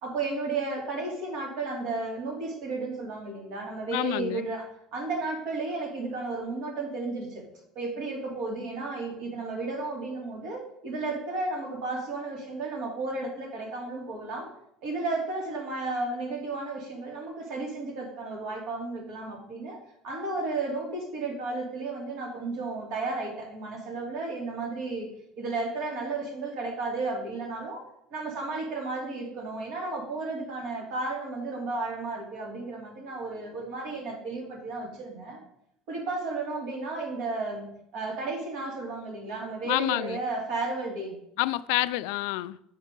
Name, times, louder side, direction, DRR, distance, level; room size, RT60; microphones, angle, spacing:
voice 1, 0.0-4.7 4.9-7.4 7.7-14.5 14.8-19.8 20.0-25.1 25.4-27.8 28.1-35.4 35.9-41.2, right 3 dB, 60° right, 2.7 m, -33 dB
voice 2, 3.9-4.4 39.6-40.2 41.4-42.6, left 18 dB, 85° left, 0.3 m, -28 dB
8.0 x 5.5 x 5.2 m
cardioid pair, 160°, 0 cm